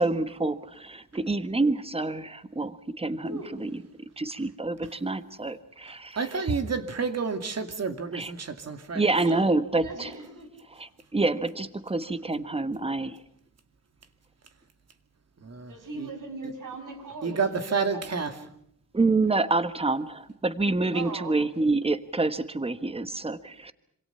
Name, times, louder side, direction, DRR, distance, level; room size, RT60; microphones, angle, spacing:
voice 1, 0.0-3.7 4.2-6.4 8.1-8.3 8.9-10.2 10.8-13.2 18.9-23.7, right 3 dB, 20° right, 1.4 m, -27 dB
voice 2, 3.1-3.7 9.2-9.4 9.8-10.5 12.7-12.9 15.7-18.5 20.9-21.4, right 3 dB, 70° right, 6.6 m, -40 dB
voice 3, 6.2-9.0 9.3-9.4 15.4-16.1 17.2-18.3, right 5 dB, 50° right, 2.6 m, -30 dB
27.0 x 26.5 x 5.7 m
wide cardioid pair, 135°, 33 cm